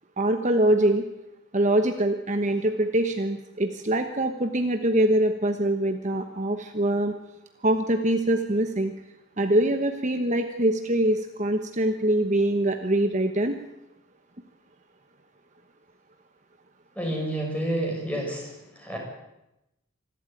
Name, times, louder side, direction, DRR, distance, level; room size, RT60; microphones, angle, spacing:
voice 1, 0.2-1.0 1.5-7.1 7.6-8.9 9.4-13.6, right 1 dB, 35° right, 6 dB, 1.2 m, -24 dB
voice 2, 16.9-19.0, right 1 dB, 5° left, 0 dB, 6.2 m, -29 dB
26.0 x 12.5 x 9.1 m, 0.91 s
head